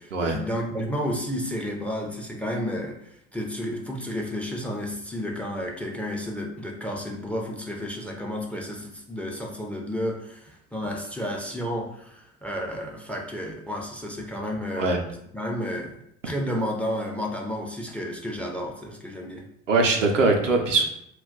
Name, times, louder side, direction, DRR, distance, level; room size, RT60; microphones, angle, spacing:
voice 1, 0.0-3.0 3.3-14.9 15.3-16.0 16.2-19.4, equal, 5° left, 1 dB, 0.4 m, -31 dB
voice 2, 19.7-20.9, right 3 dB, 85° right, 2 dB, 0.5 m, -21 dB
2.2 x 2.2 x 3.7 m, 0.73 s
figure-of-eight pair, 60°, 36 cm